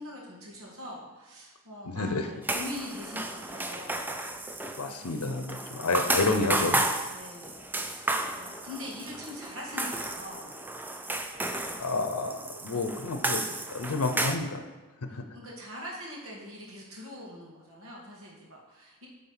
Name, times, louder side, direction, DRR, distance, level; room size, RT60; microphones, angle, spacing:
voice 1, 0.0-4.1 7.1-10.6 15.1-19.1, left 1 dB, 65° right, -3 dB, 1.9 m, -43 dB
voice 2, 1.8-2.3 4.8-6.8 11.8-13.4 13.7-14.6 15.1-15.2, left 3 dB, 80° left, 6 dB, 0.7 m, -29 dB
sound 1, 2.4-14.4, right 2 dB, 10° right, 0.4 m, -33 dB
8.6 x 3.8 x 5.7 m, 1.2 s
head